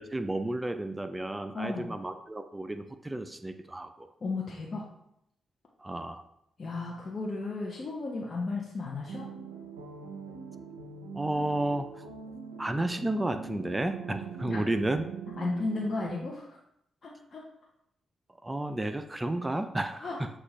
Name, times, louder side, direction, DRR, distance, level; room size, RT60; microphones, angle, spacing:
voice 1, 0.0-4.1 5.8-6.2 11.1-12.1 12.6-15.0 18.4-20.3, right 1 dB, 20° right, 9 dB, 0.3 m, -32 dB
voice 2, 1.5-1.9 4.2-4.8 6.6-9.3 14.5-14.6 15.4-16.6 17.0-17.4 20.0-20.2, left 3 dB, 50° left, -3 dB, 0.7 m, -34 dB
sound 1, 9.1-16.2, right 5 dB, 90° right, 0.5 m, -43 dB
6.1 x 2.4 x 3.1 m, 0.76 s
hypercardioid pair, 40°, 0 cm